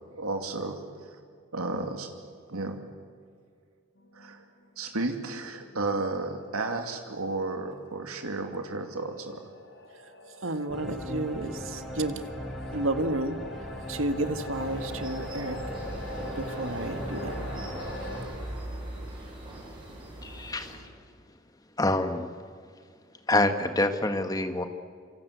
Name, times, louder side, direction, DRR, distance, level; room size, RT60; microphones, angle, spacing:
voice 1, 0.1-1.2 1.5-2.1 2.5-2.9 4.1-4.4 4.8-9.4 12.7-12.8, right 2 dB, 85° right, 4 dB, 2.6 m, -33 dB
sound 1, 4.0-6.5 6.9-7.0 7.7-18.2, left 2 dB, 55° left, 4.3 m, -44 dB
voice 2, 10.4-12.2 12.7-13.4 13.9-15.6 16.4-17.3, right 2 dB, 70° right, 8 dB, 1.7 m, -31 dB
sound 2, 10.7-19.1, equal, ahead, 3.5 m, -39 dB
sound 3, 14.5-20.8, right 1 dB, 20° right, 7.9 m, -39 dB
voice 3, 20.2-20.8 21.8-22.3 23.3-24.7, left 2 dB, 15° left, 7 dB, 1.5 m, -26 dB
26.5 x 25.0 x 8.2 m, 2.1 s
head